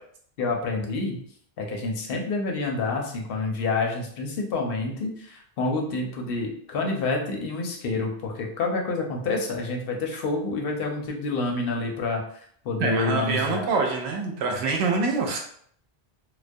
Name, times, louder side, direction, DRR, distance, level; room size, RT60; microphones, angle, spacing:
voice 1, 0.4-1.2 1.6-13.7, left 3 dB, 65° left, 1 dB, 0.8 m, -28 dB
voice 2, 12.8-15.5, right 4 dB, 85° right, 2 dB, 0.9 m, -25 dB
2.2 x 2.2 x 2.6 m, 0.62 s
omnidirectional pair, 1.1 m